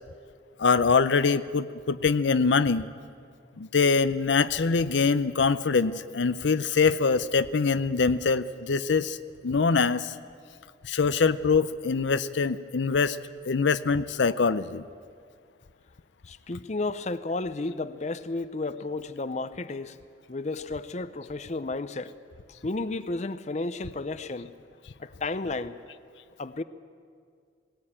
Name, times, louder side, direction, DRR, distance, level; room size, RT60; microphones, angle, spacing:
voice 1, 0.6-2.9 3.6-9.2 9.4-10.1 10.8-13.2 13.5-14.8, left 5 dB, 80° left, 0.6 m, -24 dB
voice 2, 16.2-20.0 20.3-22.1 22.6-24.5 25.0-25.8 26.4-26.6, left 3 dB, 40° left, 0.6 m, -32 dB
19.0 x 18.5 x 8.8 m
head